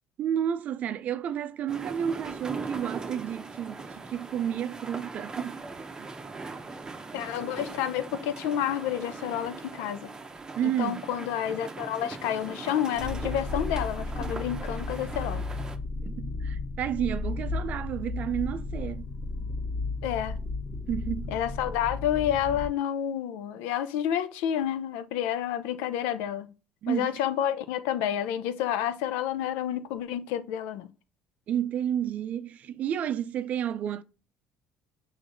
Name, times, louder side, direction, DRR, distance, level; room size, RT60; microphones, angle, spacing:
voice 1, 0.2-5.6 6.0-6.1 10.6-11.1 16.0-19.1 20.9-21.3 26.8-27.1 31.5-34.0, right 9 dB, 55° right, 0.4 m, -31 dB
sound 1, 1.7-15.8, right 3 dB, 25° right, 0.7 m, -40 dB
voice 2, 7.1-10.1 10.6-15.4 20.0-20.4 21.3-26.5 26.9-30.9, left 10 dB, 80° left, 0.5 m, -29 dB
sound 2, 12.9-22.7, left 3 dB, 65° left, 1.5 m, -34 dB
6.2 x 3.2 x 2.6 m
supercardioid pair, 80°, 3 cm